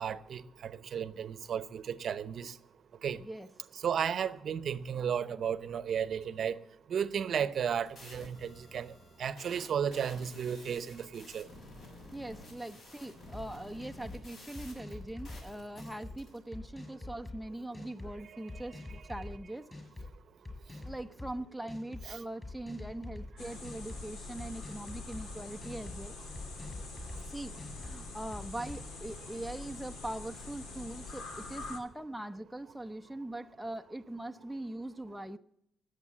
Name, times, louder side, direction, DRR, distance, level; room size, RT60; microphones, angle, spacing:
voice 1, 0.0-2.5 3.0-3.2 3.8-6.6 6.9-8.9 9.2-11.5 22.1-22.2, right 8 dB, 55° right, 0.8 m, -34 dB
sound 1, 7.5-16.4, left 2 dB, 60° left, 7.4 m, -52 dB
voice 2, 12.1-18.8 19.1-19.7 20.8-26.1 27.3-35.4, right 1 dB, ahead, 0.6 m, -42 dB
sound 2, 13.3-13.4 13.8-14.2 14.5-15.4 15.8-16.1 16.5-17.4 17.7-18.1 18.5-19.3 19.7-20.1 20.4-21.3 21.7-22.1 22.4-23.3 23.6-24.0 24.4-25.2 25.6-26.0 26.3-27.2 27.6-27.9 28.3-28.9, left 2 dB, 20° left, 5.3 m, -45 dB
sound 3, 23.4-31.8, left 3 dB, 80° left, 2.8 m, -45 dB
19.5 x 8.2 x 7.4 m
cardioid pair, 125°, 0 cm